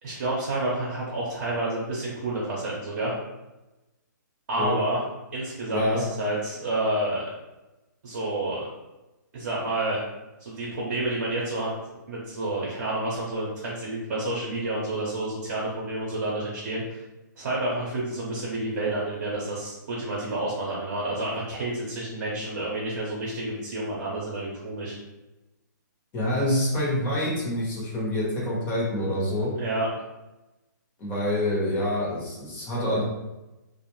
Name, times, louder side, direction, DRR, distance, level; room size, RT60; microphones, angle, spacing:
voice 1, 0.0-3.1 4.5-5.0 5.3-7.3 8.0-8.7 9.3-10.0 10.4-11.7 12.1-17.0 17.4-25.0 29.6-29.9, right 2 dB, 50° right, -5 dB, 0.7 m, -29 dB
voice 2, 5.7-6.0 26.1-29.5 31.0-33.0, left 1 dB, 15° left, -5 dB, 0.7 m, -26 dB
2.4 x 2.1 x 3.0 m, 1.0 s
hypercardioid pair, 160°, 11 cm